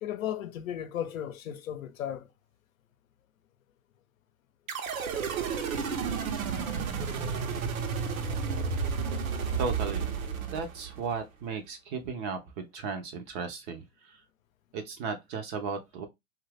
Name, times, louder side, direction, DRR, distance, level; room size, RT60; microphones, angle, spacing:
voice 1, 0.0-2.3, left 10 dB, 75° left, 0.7 m, -35 dB
sound 1, 4.7-11.1, right 5 dB, 80° right, 0.8 m, -32 dB
voice 2, 9.6-10.1 10.5-14.2 14.7-16.1, right 5 dB, 25° right, 0.4 m, -35 dB
2.7 x 2.4 x 3.2 m
hypercardioid pair, 120°, 41 cm